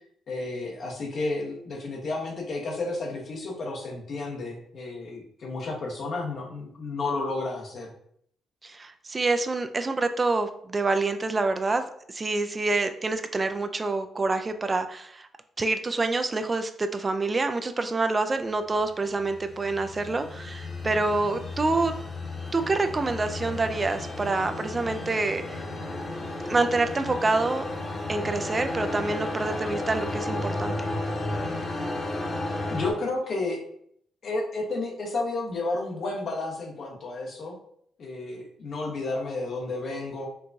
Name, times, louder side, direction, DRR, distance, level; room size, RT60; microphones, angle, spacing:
voice 1, 0.3-7.9 32.7-33.6 34.2-37.6 38.0-40.3, left 2 dB, 60° left, 1 dB, 0.9 m, -32 dB
voice 2, 8.6-15.3 15.6-21.9 22.5-25.7 26.5-27.6 28.1-30.9, right 3 dB, 35° right, 8 dB, 0.3 m, -27 dB
sound 1, 18.8-32.9, left 2 dB, 40° left, 1.1 m, -33 dB
4.5 x 2.2 x 2.6 m, 0.68 s
hypercardioid pair, 45°, 0 cm